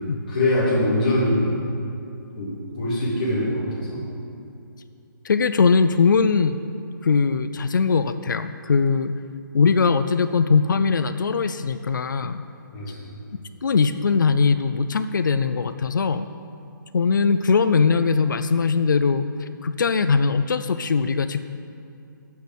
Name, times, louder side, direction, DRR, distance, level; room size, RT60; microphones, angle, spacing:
voice 1, 0.3-1.5 2.3-4.0 12.7-12.9, left 1 dB, 25° left, -8 dB, 2.8 m, -23 dB
voice 2, 5.2-6.6 7.0-9.1 9.5-12.4 13.6-16.3 16.9-21.4, left 5 dB, 65° left, 10 dB, 0.5 m, -20 dB
10.5 x 6.6 x 8.2 m, 2.6 s
hypercardioid pair, 175°, 11 cm